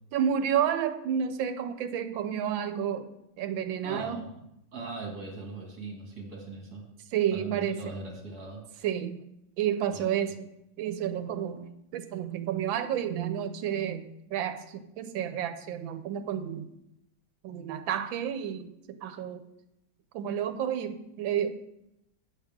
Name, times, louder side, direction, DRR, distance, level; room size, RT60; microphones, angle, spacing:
voice 1, 0.1-3.1 3.4-4.2 7.1-7.8 8.8-9.3 9.6-10.5 10.8-16.7 17.4-19.4 20.1-21.6, right 9 dB, 85° right, 10 dB, 1.4 m, -30 dB
voice 2, 3.8-4.3 4.7-6.9 7.3-8.7 9.9-10.1, right 3 dB, 50° right, -1 dB, 2.5 m, -39 dB
8.3 x 7.6 x 3.6 m, 0.83 s
omnidirectional pair, 2.1 m